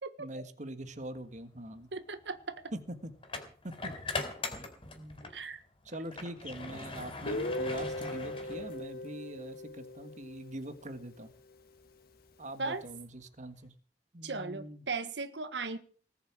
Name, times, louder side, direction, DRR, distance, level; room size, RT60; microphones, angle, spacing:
voice 1, 0.2-1.9 2.7-3.1 3.6-3.9 5.0-5.3 5.8-11.3 12.4-13.7 14.1-14.8, right 1 dB, 45° right, 1.7 m, -43 dB
sound 1, 1.2-1.4 3.2-5.4 5.8-9.1, left 3 dB, 30° left, 4.1 m, -40 dB
voice 2, 1.9-2.7 5.3-5.6 12.6-12.8 14.2-15.8, right 4 dB, 85° right, 1.5 m, -37 dB
Guitar, 7.3-11.1, left 1 dB, 60° left, 1.5 m, -39 dB
20.0 x 7.3 x 8.7 m
head